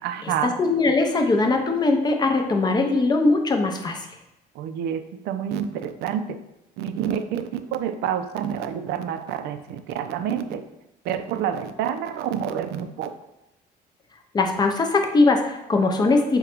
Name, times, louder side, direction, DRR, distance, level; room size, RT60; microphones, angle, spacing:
voice 1, 0.0-0.5 4.5-6.4 6.8-10.7 11.0-13.1, right 9 dB, 80° right, 9 dB, 0.4 m, -28 dB
voice 2, 0.6-4.0 14.3-16.4, left 3 dB, 25° left, 4 dB, 0.5 m, -20 dB
3.7 x 2.2 x 4.3 m, 0.89 s
cardioid pair, 110°, 17 cm